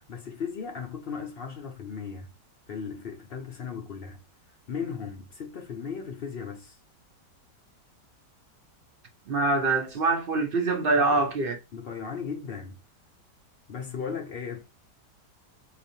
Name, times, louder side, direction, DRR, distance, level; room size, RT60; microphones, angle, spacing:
voice 1, 0.0-2.3 2.7-4.2 4.7-6.8 11.0-11.2 11.7-12.8 13.7-14.6, left 6 dB, 75° left, 0.5 m, -36 dB
voice 2, 9.3-11.6, right 3 dB, 60° right, 0.5 m, -24 dB
4.1 x 3.1 x 2.6 m
omnidirectional pair, 1.9 m